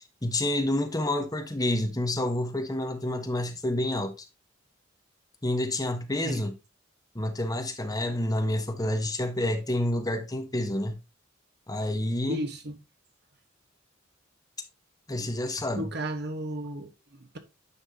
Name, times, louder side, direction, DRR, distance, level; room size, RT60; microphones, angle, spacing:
voice 1, 0.2-4.2 5.4-6.5 7.1-10.9 11.7-12.4 15.1-15.9, left 1 dB, 20° left, 1.3 m, -28 dB
voice 2, 12.3-12.8 15.7-17.4, right 1 dB, 55° right, 1.3 m, -34 dB
9.8 x 5.8 x 2.8 m
head